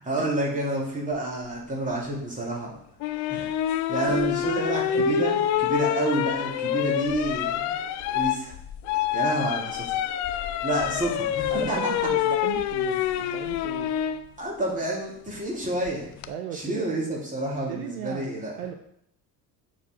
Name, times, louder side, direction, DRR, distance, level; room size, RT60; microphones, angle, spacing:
voice 1, 0.0-2.8 3.3-3.5 3.9-5.3 5.6-7.8 8.1-8.5 9.1-10.0 10.6-12.1 14.4-16.1 16.5-18.5, right 2 dB, 15° right, -4 dB, 2.7 m, -29 dB
sound 1, 3.0-14.2 15.9-16.3, left 10 dB, 40° left, 0.5 m, -27 dB
voice 2, 4.1-4.7 4.9-5.2 11.5-14.0 16.3-17.0 17.7-18.7, right 9 dB, 65° right, 5 dB, 0.7 m, -37 dB
7.0 x 4.3 x 4.4 m, 0.73 s
figure-of-eight pair, 60°, 49 cm